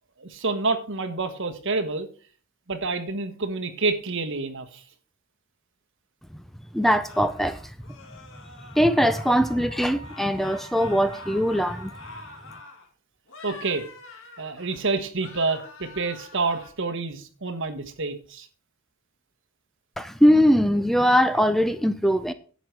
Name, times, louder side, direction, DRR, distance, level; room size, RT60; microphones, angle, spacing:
voice 1, 0.2-2.1 2.7-4.8 13.4-13.9 14.4-18.5, right 3 dB, 60° right, 1.4 m, -28 dB
voice 2, 6.7-7.6 8.8-11.9 20.0-22.3, equal, ahead, 0.5 m, -21 dB
sound 1, 7.1-9.7 10.0-12.9 13.3-14.9 15.2-16.7, left 3 dB, 65° left, 2.0 m, -45 dB
Wind instrument woodwind instrument, 9.0-12.5, right 3 dB, 35° right, 1.7 m, -47 dB
11.0 x 7.8 x 4.7 m
head